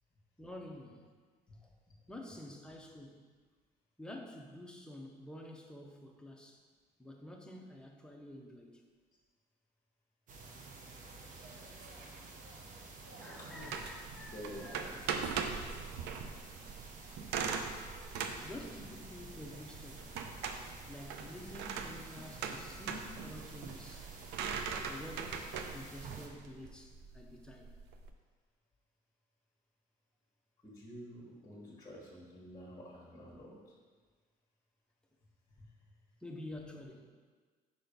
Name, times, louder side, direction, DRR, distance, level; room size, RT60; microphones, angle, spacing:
voice 1, 0.4-1.1 1.6-1.7 2.1-3.2 4.0-6.6 7.0-8.8 13.2-15.2 18.4-20.1 20.9-24.1 24.9-27.7 36.2-37.1, left 1 dB, 5° left, 1 dB, 0.7 m, -49 dB
sound 1, 10.3-26.3, right 3 dB, 50° right, 0.9 m, -51 dB
voice 2, 13.4-13.7 14.3-14.9 30.6-33.6, equal, 20° left, -6 dB, 1.4 m, -49 dB
sound 2, 13.6-28.1, right 6 dB, 85° right, 0.5 m, -41 dB
5.2 x 4.3 x 5.3 m, 1.5 s
cardioid pair, 110°, 17 cm